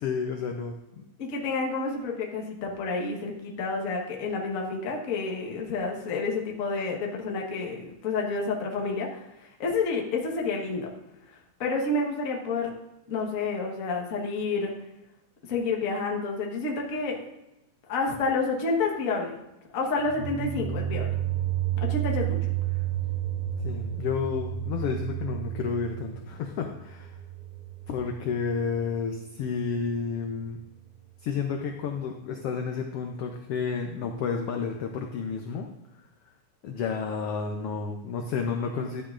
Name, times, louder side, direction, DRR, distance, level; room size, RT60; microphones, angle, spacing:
voice 1, 0.0-1.0 23.6-27.2 27.9-30.6 31.2-35.7 36.6-39.0, left 5 dB, 85° left, 3 dB, 1.3 m, -31 dB
voice 2, 1.2-10.9 11.3-12.7 13.1-14.7 15.5-17.2 17.9-19.4 19.7-21.1 21.8-22.4, left 3 dB, 55° left, 0 dB, 0.9 m, -29 dB
sound 1, 19.9-28.9, right 11 dB, 20° right, 4.2 m, -31 dB
12.5 x 8.7 x 2.5 m, 0.91 s
omnidirectional pair, 3.5 m